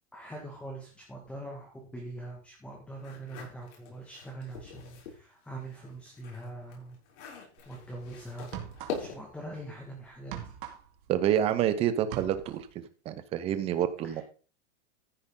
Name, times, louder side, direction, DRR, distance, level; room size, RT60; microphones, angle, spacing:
voice 1, 0.1-7.0 7.7-8.5 9.0-10.4 14.0-14.2, right 2 dB, 5° left, -1 dB, 1.9 m, -43 dB
sound 1, 3.0-5.2 5.6-9.4, left 5 dB, 75° left, 6.8 m, -43 dB
sound 2, 7.6-7.8 8.4-9.3 9.6-11.7 12.0-12.7, right 10 dB, 50° right, 2.4 m, -42 dB
voice 2, 11.1-12.7 13.1-14.2, right 10 dB, 15° right, 11 dB, 0.8 m, -27 dB
14.5 x 7.8 x 3.8 m, 0.37 s
supercardioid pair, 175°, 34 cm